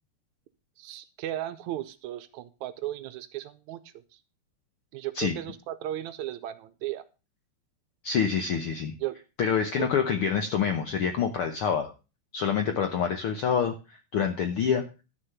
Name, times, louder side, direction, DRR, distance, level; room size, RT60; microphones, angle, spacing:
voice 1, 0.8-4.0 4.9-7.0 8.5-8.6 9.0-9.2 9.8-9.9 12.9-13.0, right 13 dB, 75° right, 12 dB, 1.9 m, -36 dB
voice 2, 8.0-8.9 9.4-11.9 12.3-14.8, left 7 dB, 80° left, 7 dB, 1.2 m, -27 dB
11.5 x 6.5 x 5.8 m, 0.30 s
omnidirectional pair, 3.8 m